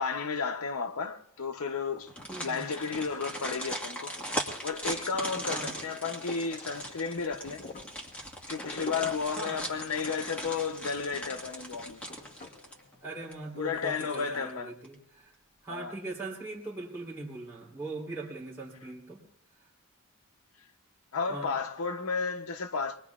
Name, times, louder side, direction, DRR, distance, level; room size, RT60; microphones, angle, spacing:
voice 1, 0.0-2.1 2.4-4.2 4.6-7.6 8.5-12.0 13.6-14.7 15.7-15.9 21.1-23.0, left 5 dB, 75° left, 0.8 m, -33 dB
sound 1, 2.0-2.4 2.9-3.8 4.3-14.2, left 2 dB, 35° left, 1.1 m, -49 dB
sound 2, 2.0-13.0 13.3-13.4 13.8-14.5 14.8-14.9, equal, 5° left, 1.6 m, -39 dB
voice 2, 2.3-2.7 5.4-5.8 9.3-9.6 13.0-15.3 15.6-19.2 19.6-19.7 21.3-21.6, right 3 dB, 10° right, 3.4 m, -40 dB
25.5 x 20.5 x 2.4 m
head